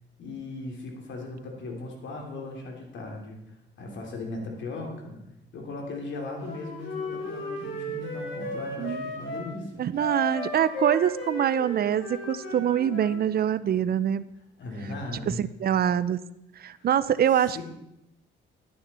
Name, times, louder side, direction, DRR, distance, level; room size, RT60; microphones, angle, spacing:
voice 1, 0.2-3.4 3.8-5.2 5.5-9.8 14.6-15.4 16.7-16.9 17.3-17.6, left 2 dB, 70° left, 1 dB, 3.0 m, -37 dB
Wind instrument woodwind instrument, 6.4-9.5 9.9-13.2, left 1 dB, 85° left, 3.2 m, -35 dB
voice 2, 9.8-14.3 15.2-16.2 16.6-17.6, right 9 dB, 50° right, 16 dB, 0.5 m, -24 dB
10.5 x 9.5 x 4.3 m, 0.86 s
cardioid pair, 90°, 20 cm